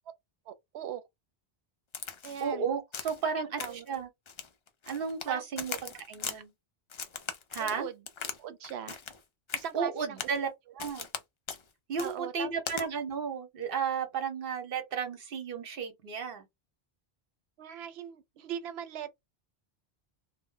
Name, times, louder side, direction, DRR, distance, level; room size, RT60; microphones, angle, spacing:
voice 1, 0.5-1.0 2.2-2.7 3.4-3.9 5.3-5.4 5.7-5.8 6.3-6.4 7.6-8.0 8.4-9.0 9.5-10.3 12.0-12.5 17.6-19.1, right 9 dB, 90° right, 0.8 m, -40 dB
Crack, 1.9-2.5 2.9-3.2 3.6-3.9 4.3-5.3 5.6-6.4 6.9-8.4 8.6-9.2 9.5-9.7 10.2-10.4 10.8-11.2 11.5-11.6 12.0-12.1 12.7-12.8, left 6 dB, 50° left, 0.3 m, -39 dB
voice 2, 2.4-4.1 4.9-6.5 7.5-7.9 9.7-10.5 10.8-11.1 11.9-16.5, right 6 dB, 65° right, 1.0 m, -33 dB
2.1 x 2.1 x 3.6 m
omnidirectional pair, 1.1 m